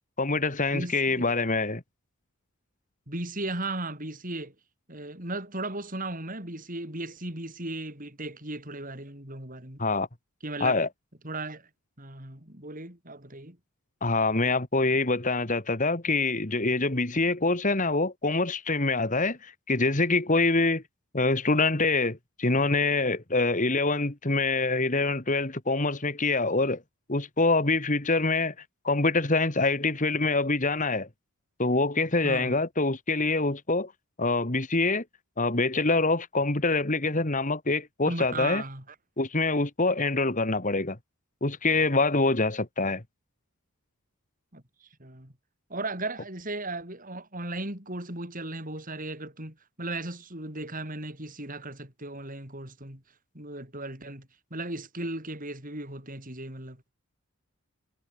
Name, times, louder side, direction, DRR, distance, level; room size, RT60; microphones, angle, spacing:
voice 1, 0.2-1.8 9.8-10.1 10.6-10.9 14.0-20.8 21.1-26.8 27.1-28.5 28.8-31.1 31.6-33.9 34.2-35.0 35.4-38.6 39.2-41.0 41.4-43.0, left 3 dB, 35° left, 2.1 m, -25 dB
voice 2, 0.7-1.3 3.1-4.5 4.9-9.8 10.4-10.8 11.2-11.7 12.0-13.6 32.2-32.6 38.1-38.8 44.5-45.3 45.7-53.0 53.3-56.8, right 2 dB, 35° right, 6.9 m, -36 dB
head